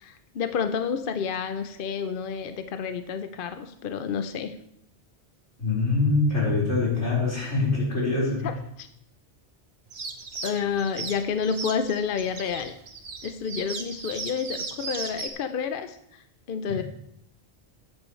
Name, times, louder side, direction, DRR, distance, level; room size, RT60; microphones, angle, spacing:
voice 1, 0.0-4.6 8.4-8.9 10.4-12.7 13.2-16.8, left 6 dB, 60° left, 9 dB, 0.7 m, -30 dB
voice 2, 5.6-8.4 16.7-16.8, left 3 dB, 85° left, -6 dB, 4.8 m, -24 dB
sound 1, 9.9-15.3, right 4 dB, 65° right, 1.3 m, -36 dB
14.0 x 9.4 x 3.2 m, 0.74 s
omnidirectional pair, 1.1 m